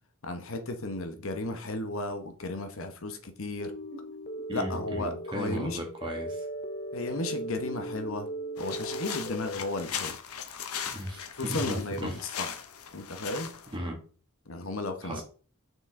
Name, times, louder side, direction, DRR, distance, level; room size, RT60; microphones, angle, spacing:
voice 1, 0.2-3.7 4.5-5.8 6.9-8.3 8.6-10.2 11.4-12.1 12.4-12.5 12.9-13.5 14.5-15.2, left 2 dB, 65° left, 1.0 m, -34 dB
sound 1, 3.6-9.7, right 1 dB, 30° left, 0.6 m, -38 dB
voice 2, 4.5-6.5 10.9-12.2 13.7-14.0 15.0-15.2, equal, 25° right, 1.9 m, -36 dB
sound 2, 8.6-13.8, left 8 dB, 90° left, 0.9 m, -38 dB
6.3 x 5.4 x 3.7 m
head